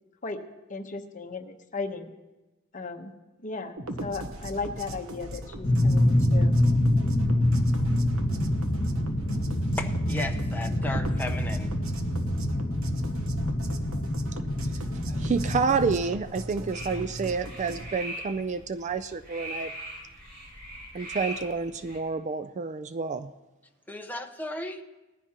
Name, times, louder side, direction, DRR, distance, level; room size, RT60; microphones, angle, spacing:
voice 1, 0.7-2.1 2.7-3.1 3.4-3.8 4.0-6.5, left 4 dB, 40° left, 4 dB, 1.0 m, -35 dB
sound 1, 3.8-17.9, equal, 75° right, 1.1 m, -39 dB
sound 2, 5.6-15.9, left 1 dB, 60° left, 1.3 m, -26 dB
voice 2, 9.8-11.7 23.9-24.8, left 2 dB, 10° left, 3 dB, 0.9 m, -35 dB
voice 3, 15.1-19.7 20.9-23.3, right 5 dB, 35° right, 12 dB, 0.4 m, -29 dB
sound 3, 16.7-22.0, right 1 dB, 50° right, 4.0 m, -40 dB
19.0 x 14.5 x 2.9 m, 1.1 s
head